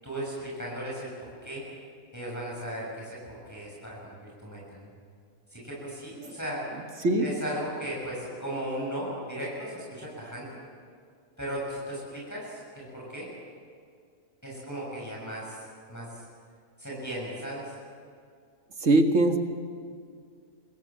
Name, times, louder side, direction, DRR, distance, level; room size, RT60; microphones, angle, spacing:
voice 1, 0.0-1.7 2.1-4.9 5.5-6.6 7.2-10.6 11.4-13.3 14.4-16.3 16.8-17.8, right 1 dB, 10° left, -5 dB, 7.3 m, -36 dB
voice 2, 7.0-7.3 18.8-19.4, right 2 dB, 55° right, 5 dB, 2.1 m, -21 dB
27.5 x 21.0 x 7.7 m, 2.2 s
omnidirectional pair, 1.6 m